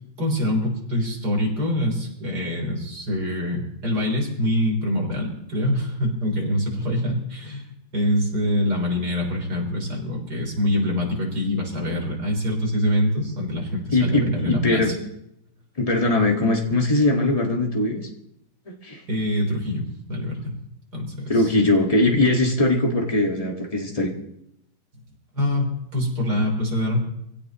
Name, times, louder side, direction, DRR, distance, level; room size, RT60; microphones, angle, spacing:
voice 1, 0.2-7.7 7.9-14.9 19.1-20.6 20.9-21.3 25.3-27.0, left 1 dB, 60° right, -1 dB, 4.3 m, -25 dB
voice 2, 13.9-14.9 15.8-18.1 18.7-19.0 21.3-24.1, left 2 dB, 20° left, 1 dB, 1.9 m, -21 dB
25.0 x 16.5 x 3.1 m, 0.78 s
omnidirectional pair, 2.0 m